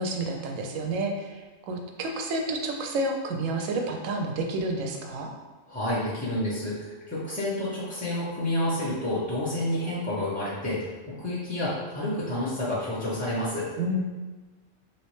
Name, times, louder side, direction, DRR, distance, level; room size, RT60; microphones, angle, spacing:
voice 1, 0.0-5.3 13.8-14.0, right 2 dB, 80° right, 3 dB, 0.9 m, -30 dB
voice 2, 5.7-10.9 11.2-13.7, left 1 dB, 10° left, -8 dB, 0.4 m, -29 dB
3.1 x 2.8 x 3.1 m, 1.3 s
omnidirectional pair, 1.4 m